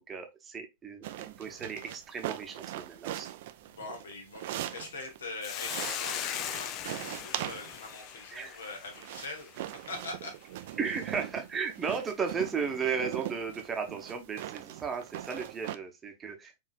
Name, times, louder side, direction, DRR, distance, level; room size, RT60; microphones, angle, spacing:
voice 1, 0.0-3.3 8.3-8.6 10.8-16.6, right 5 dB, 20° right, 0.8 m, -35 dB
sound 1, 1.0-5.2 5.6-7.9 8.6-15.8, right 13 dB, 55° right, 0.3 m, -40 dB
voice 2, 3.6-9.5 9.9-10.4, left 2 dB, 65° left, 1.2 m, -43 dB
Hiss, 5.4-9.9, left 10 dB, 40° left, 0.4 m, -39 dB
4.9 x 2.7 x 2.4 m
figure-of-eight pair, 90°, 0 cm